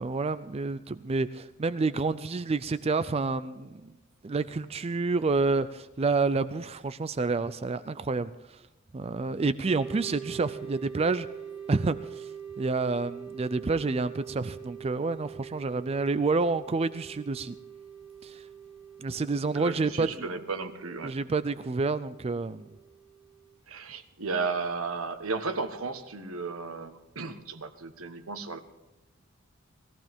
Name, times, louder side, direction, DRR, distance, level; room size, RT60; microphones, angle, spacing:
voice 1, 0.0-3.9 4.2-8.3 8.9-11.3 11.7-12.3 12.6-17.5 18.2-18.4 19.0-20.1 21.0-22.7, right 3 dB, 30° right, 13 dB, 0.4 m, -28 dB
sound 1, 9.7-23.6, right 8 dB, 5° right, 2.3 m, -44 dB
voice 2, 19.5-21.2 23.7-28.6, right 4 dB, 85° right, 8 dB, 1.3 m, -34 dB
20.5 x 15.0 x 3.6 m, 1.0 s
head